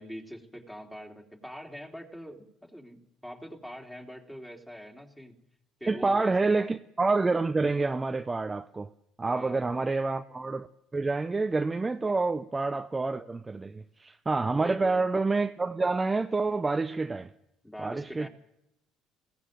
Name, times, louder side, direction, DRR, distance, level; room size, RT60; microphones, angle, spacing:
voice 1, 0.0-5.4 5.8-6.7 9.3-9.9 12.0-12.2 14.5-15.1 17.6-18.3, equal, 5° left, 3.4 m, -44 dB
voice 2, 5.9-8.9 9.2-10.7 10.9-17.3 17.8-18.3, right 3 dB, 20° right, 0.7 m, -28 dB
22.5 x 16.5 x 7.7 m
hypercardioid pair, 65°, 0 cm